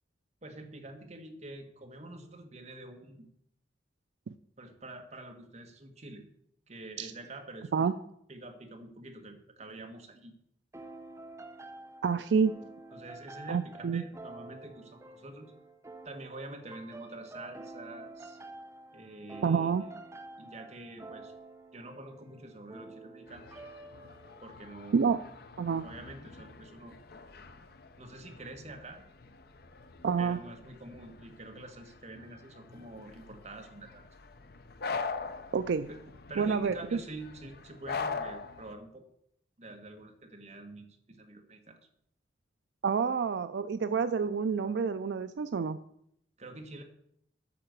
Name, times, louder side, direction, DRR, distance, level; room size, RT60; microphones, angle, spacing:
voice 1, 0.4-3.3 4.6-6.3 6.7-7.7 8.3-10.3 12.9-15.5 16.0-18.4 18.9-19.7 20.4-21.3 21.7-23.6 24.4-25.2 25.7-27.0 28.0-29.0 30.2-34.0 35.9-36.0 36.3-39.0 39.6-41.8 46.4-46.8, right 2 dB, 40° right, 3 dB, 1.4 m, -46 dB
sound 1, 10.7-24.4, right 2 dB, 15° right, 0.7 m, -49 dB
voice 2, 12.0-12.5 13.5-14.0 19.4-19.8 24.9-25.2 25.6-25.8 30.0-30.4 35.5-35.9 36.4-37.0 42.8-45.8, right 6 dB, 70° right, 11 dB, 0.4 m, -28 dB
sound 2, 23.3-38.7, left 4 dB, 60° left, 0.6 m, -43 dB
8.6 x 5.7 x 6.6 m, 0.73 s
head